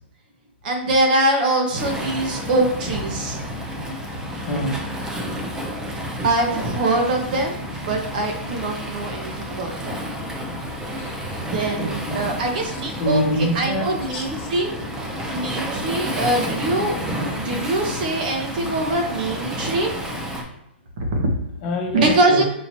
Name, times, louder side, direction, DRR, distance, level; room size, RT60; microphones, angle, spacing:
voice 1, 0.6-3.4 6.2-10.0 11.4-14.7 15.3-19.9 21.1-21.2 21.9-22.4, right 2 dB, 50° right, 2 dB, 1.2 m, -23 dB
Waves surf, 1.8-20.4, equal, 10° right, 0.6 m, -30 dB
voice 2, 4.5-4.9 10.9-11.4 11.8-12.3 12.7-14.5 21.6-22.4, left 1 dB, 35° left, 0 dB, 1.0 m, -26 dB
5.1 x 2.8 x 2.9 m, 0.84 s
hypercardioid pair, 155°, 6 cm